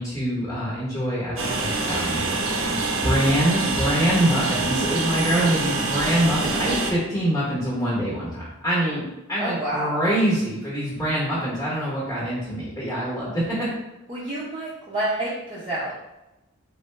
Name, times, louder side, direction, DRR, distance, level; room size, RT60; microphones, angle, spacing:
voice 1, 0.0-2.2 2.7-9.0 9.3-13.7, right 1 dB, 15° left, -7 dB, 1.0 m, -24 dB
Train, 1.4-6.9, right 3 dB, 70° right, 0.7 m, -26 dB
voice 2, 9.4-9.9 14.1-15.9, right 1 dB, 25° right, -10 dB, 0.8 m, -28 dB
4.3 x 3.2 x 3.3 m, 0.96 s
head